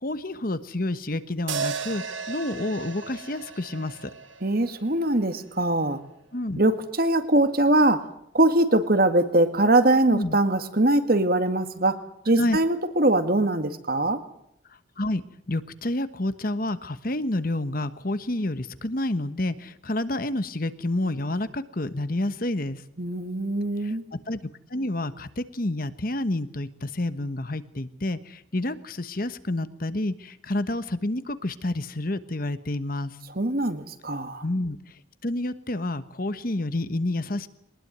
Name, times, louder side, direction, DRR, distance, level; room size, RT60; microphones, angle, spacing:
voice 1, 0.0-4.1 6.3-6.6 10.1-10.4 12.3-12.6 15.0-15.2 15.5-22.8 23.8-24.4 24.7-33.2 34.4-37.5, left 1 dB, 45° left, 13 dB, 1.2 m, -29 dB
sound 1, 1.5-5.8, right 5 dB, 75° right, 2.6 m, -36 dB
voice 2, 4.4-6.0 6.6-8.0 8.3-12.0 12.3-14.2 23.0-24.0 33.4-34.4, right 1 dB, 50° right, 9 dB, 2.1 m, -22 dB
22.5 x 20.0 x 9.4 m, 0.75 s
head